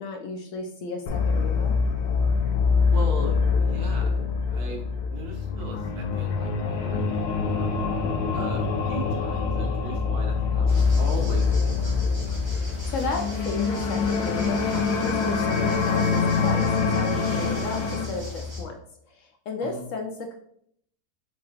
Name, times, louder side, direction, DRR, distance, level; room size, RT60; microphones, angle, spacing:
voice 1, 0.0-1.8 12.8-18.8 19.1-20.3, left 3 dB, 65° left, 3 dB, 0.9 m, -34 dB
sound 1, 1.1-18.1, left 5 dB, 85° left, 1.2 m, -24 dB
voice 2, 2.9-4.1 4.5-7.7 8.3-10.6 11.0-11.7 19.6-19.8, right 2 dB, 75° right, 0 dB, 1.4 m, -38 dB
sound 2, 10.7-18.6, left 2 dB, 20° right, 1.1 m, -36 dB
5.6 x 3.1 x 2.8 m, 0.68 s
omnidirectional pair, 1.6 m